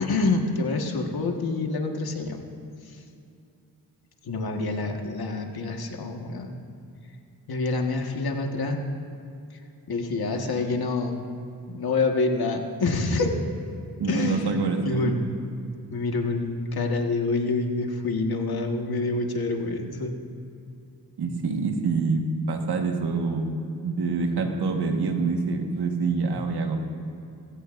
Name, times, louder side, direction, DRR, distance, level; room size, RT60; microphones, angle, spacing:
voice 1, 0.0-2.4 4.2-6.5 7.5-8.8 9.9-11.2 11.7-13.3 14.1-15.3 15.9-20.2, left 3 dB, 70° left, 2 dB, 1.7 m, -27 dB
voice 2, 14.0-15.2 21.2-26.8, right 4 dB, 85° right, 3 dB, 1.6 m, -26 dB
20.5 x 16.0 x 2.6 m, 2.7 s
cardioid pair, 55°, 38 cm